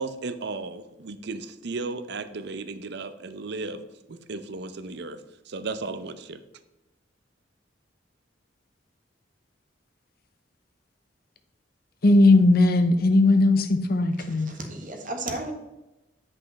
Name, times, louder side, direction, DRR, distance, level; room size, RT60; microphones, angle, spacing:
voice 1, 0.0-6.4, right 3 dB, 65° right, 11 dB, 0.7 m, -35 dB
voice 2, 12.0-14.5, left 2 dB, 55° left, 8 dB, 0.8 m, -18 dB
voice 3, 14.2-15.5, right 2 dB, 45° right, 3 dB, 1.6 m, -34 dB
10.0 x 5.4 x 4.1 m, 0.97 s
head